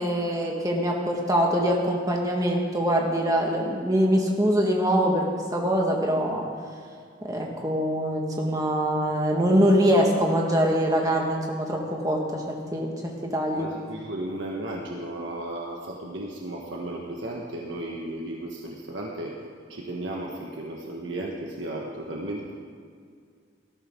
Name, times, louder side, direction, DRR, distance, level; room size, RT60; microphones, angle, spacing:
voice 1, 0.0-5.3 5.5-6.4 7.2-11.8 12.0-12.9 13.3-13.7, equal, 20° right, -1 dB, 1.8 m, -23 dB
voice 2, 13.5-19.4 19.7-22.5, right 1 dB, 80° right, -2 dB, 1.5 m, -34 dB
18.5 x 13.5 x 3.9 m, 2.2 s
head